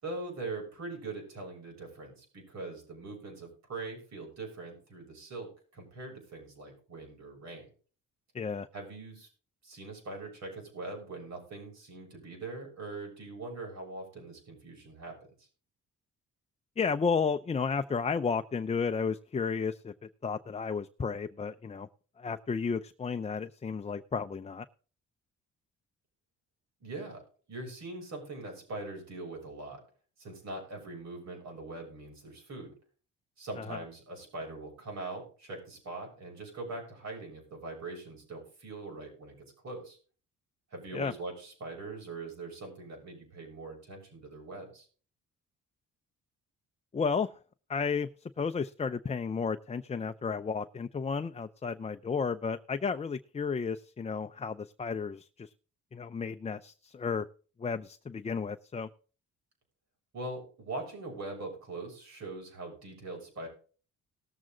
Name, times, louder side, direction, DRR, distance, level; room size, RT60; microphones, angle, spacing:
voice 1, 0.0-7.7 8.7-9.3 9.6-15.2 26.8-27.2 27.5-29.8 30.2-32.7 33.4-40.0 40.7-44.9 60.1-63.5, right 2 dB, 60° right, 1 dB, 6.9 m, -42 dB
voice 2, 8.3-8.7 16.8-19.9 20.2-21.9 22.2-24.7 33.6-33.8 40.9-41.1 46.9-47.4 47.7-55.5 55.9-57.3 57.6-58.9, left 5 dB, 20° left, 9 dB, 0.6 m, -33 dB
18.5 x 7.4 x 3.8 m, 0.40 s
cardioid pair, 90°, 30 cm